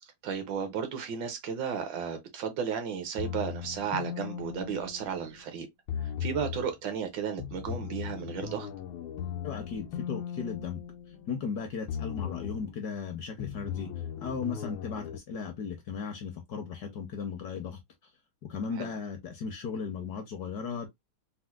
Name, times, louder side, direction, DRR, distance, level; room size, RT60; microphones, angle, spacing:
voice 1, 0.0-5.7 6.0-8.7 18.8-18.9, right 7 dB, 75° right, 1.3 m, -34 dB
sound 1, 3.2-5.4 5.9-6.7 7.4-11.5 11.9-12.7 13.4-15.2, left 8 dB, 85° left, 1.4 m, -38 dB
voice 2, 9.4-10.8 11.3-13.9 14.2-17.8 18.5-20.9, left 6 dB, 65° left, 1.0 m, -36 dB
4.3 x 2.1 x 2.3 m
omnidirectional pair, 2.2 m